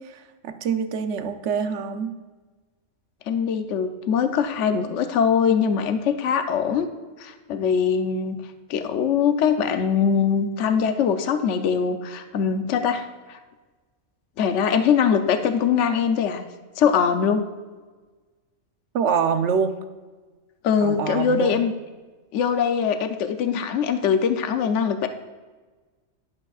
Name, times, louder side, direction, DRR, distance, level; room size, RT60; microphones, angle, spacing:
voice 1, 0.0-2.1 18.9-19.7 20.8-21.6, right 6 dB, 65° right, 8 dB, 1.0 m, -25 dB
voice 2, 3.3-6.9 7.2-8.4 8.7-13.4 14.4-16.4 16.8-17.4 20.6-21.7 22.3-25.1, left 7 dB, 70° left, 7 dB, 1.0 m, -22 dB
12.0 x 10.5 x 2.4 m, 1.3 s
omnidirectional pair, 1.3 m